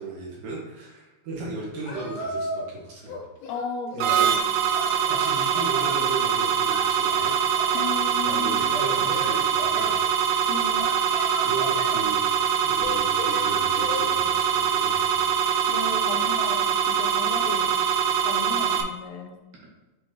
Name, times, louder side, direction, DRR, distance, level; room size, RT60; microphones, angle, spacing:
voice 1, 0.0-3.2 3.9-4.3 5.1-7.3 8.2-10.0 11.4-12.3 12.6-15.3, right 3 dB, 65° right, -5 dB, 3.0 m, -35 dB
Singing, 1.8-2.8 3.1-4.3 4.7-6.0 6.7-8.0 8.7-9.9 10.8-12.1 12.8-14.1, left 1 dB, 60° left, 1.9 m, -35 dB
voice 2, 3.4-4.5 7.7-8.5 10.5-10.9 15.7-17.7 18.2-19.4, left 4 dB, 80° left, 3 dB, 2.7 m, -35 dB
sound 1, 4.0-18.8, right 8 dB, 85° right, 2.6 m, -23 dB
8.0 x 4.1 x 3.0 m, 1.1 s
omnidirectional pair, 4.7 m